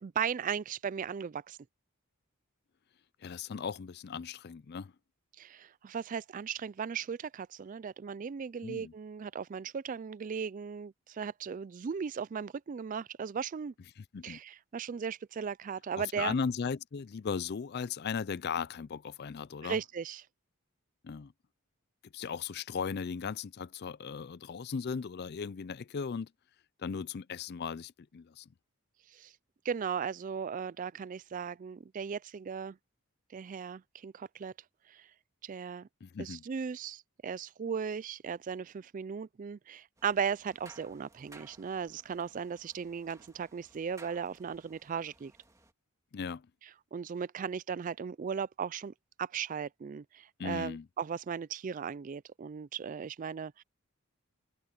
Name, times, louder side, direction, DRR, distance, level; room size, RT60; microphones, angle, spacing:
voice 1, 0.0-1.6 5.4-13.7 14.2-16.3 19.6-20.2 29.1-29.3 29.7-32.8 33.3-34.5 34.9-35.1 35.4-35.9 36.2-45.3 46.9-53.6, right 6 dB, 35° right, 0.3 m, -37 dB
voice 2, 3.2-4.9 8.6-8.9 14.0-14.4 16.0-19.8 21.0-21.3 22.1-26.3 26.8-28.5 36.0-36.4 46.1-46.5 50.4-50.9, left 6 dB, 45° left, 0.4 m, -37 dB
sound 1, 40.0-45.7, right 2 dB, 15° right, 2.0 m, -58 dB
head